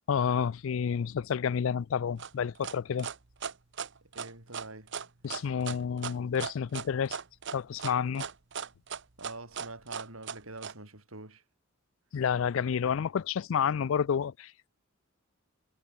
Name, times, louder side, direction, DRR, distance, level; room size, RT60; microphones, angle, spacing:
voice 1, 0.1-3.1 5.2-7.2 7.5-8.3 12.1-14.7, left 7 dB, 65° left, 0.4 m, -30 dB
sound 1, 2.2-10.7, right 6 dB, 60° right, 1.2 m, -38 dB
voice 2, 4.1-4.9 9.2-11.4, right 2 dB, 80° right, 6.4 m, -45 dB
head